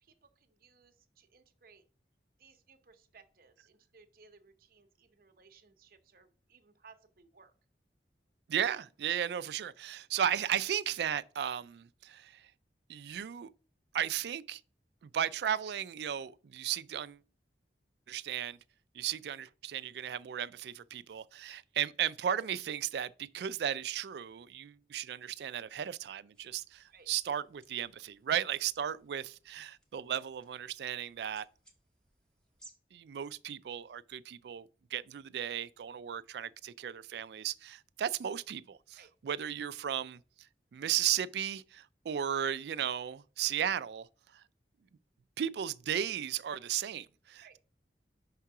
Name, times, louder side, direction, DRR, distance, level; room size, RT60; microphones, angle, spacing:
voice 1, 0.0-1.8 2.4-7.5 26.9-27.1 39.0-39.1 47.4-47.6, right 5 dB, 55° right, 0.8 m, -61 dB
voice 2, 8.5-12.4 12.9-13.5 13.9-14.6 15.0-17.2 18.1-18.6 18.9-31.5 32.9-39.0 39.2-40.2 40.7-44.1 45.4-47.6, right 9 dB, 70° right, 0.3 m, -35 dB
sound 1, 26.3-32.7, right 2 dB, 5° left, 1.0 m, -64 dB
5.7 x 3.6 x 5.8 m
head